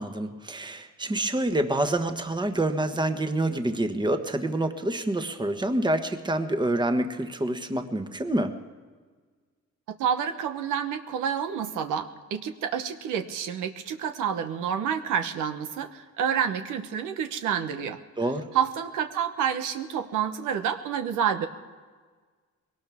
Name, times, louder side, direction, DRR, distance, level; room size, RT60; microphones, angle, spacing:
voice 1, 0.0-8.6 18.2-18.5, right 1 dB, 15° right, 7 dB, 1.3 m, -27 dB
voice 2, 9.9-18.0 18.5-21.5, right 8 dB, 90° right, 7 dB, 1.1 m, -29 dB
21.5 x 18.0 x 3.6 m, 1.5 s
cardioid pair, 90°, 30 cm